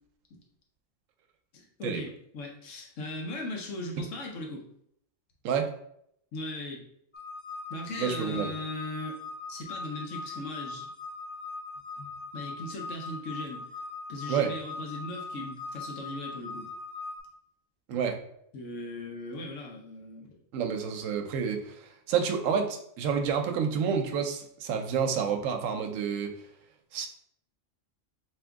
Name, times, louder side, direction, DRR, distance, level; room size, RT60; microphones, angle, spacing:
voice 1, 1.5-4.7 6.3-6.9 7.7-9.1 9.5-10.9 12.0-12.1 12.3-13.7 14.1-16.7 18.5-20.3, left 1 dB, 75° left, 0 dB, 1.2 m, -38 dB
sound 1, 7.1-17.2, left 3 dB, 45° left, 0.7 m, -40 dB
voice 2, 8.0-8.5 14.3-14.5 17.9-18.2 20.5-26.3 26.9-27.1, right 7 dB, 85° right, 5 dB, 1.0 m, -29 dB
3.6 x 3.0 x 3.5 m, 0.71 s
omnidirectional pair, 1.3 m